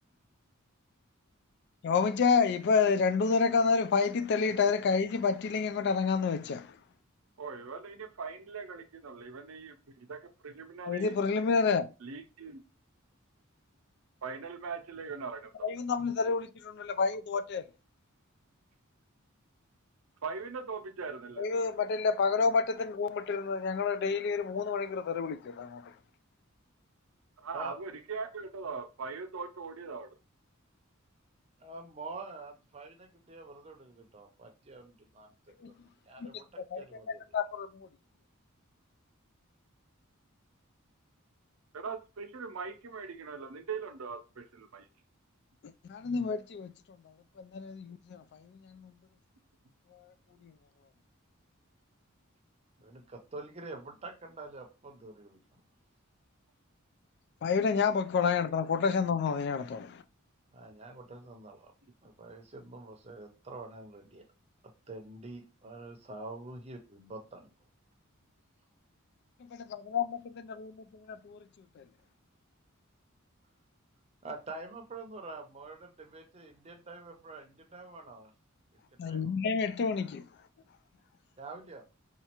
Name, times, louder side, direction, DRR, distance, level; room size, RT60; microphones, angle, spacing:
voice 1, 1.8-6.7 10.9-11.9 15.6-17.6 21.4-25.9 35.6-35.7 36.2-36.3 36.6-36.8 37.3-37.9 45.9-46.7 47.4-48.9 50.4-50.5 57.4-60.0 69.5-71.4 71.8-71.9 79.0-80.3, left 5 dB, 55° left, 0.3 m, -29 dB
voice 2, 7.4-11.1 12.0-12.6 14.2-15.7 20.2-21.6 27.4-30.1 41.7-44.9, right 5 dB, 80° right, 0.6 m, -41 dB
voice 3, 31.6-35.7 36.0-37.2 52.8-55.6 60.5-61.7 62.0-64.3 64.9-67.5 74.2-78.3 78.9-79.4 81.4-81.8, right 3 dB, 30° right, 0.6 m, -46 dB
4.2 x 2.4 x 2.9 m
head